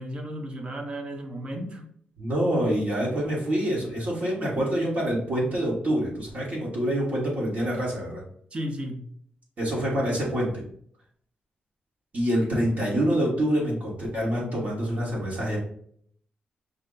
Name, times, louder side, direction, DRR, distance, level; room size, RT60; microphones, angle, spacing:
voice 1, 0.0-1.9 8.5-9.0 12.3-12.4, equal, 30° right, 5 dB, 0.6 m, -34 dB
voice 2, 2.2-8.2 9.6-10.5 12.1-15.6, equal, 50° right, -3 dB, 1.4 m, -26 dB
5.5 x 2.1 x 3.8 m, 0.63 s
wide cardioid pair, 165°, 3 cm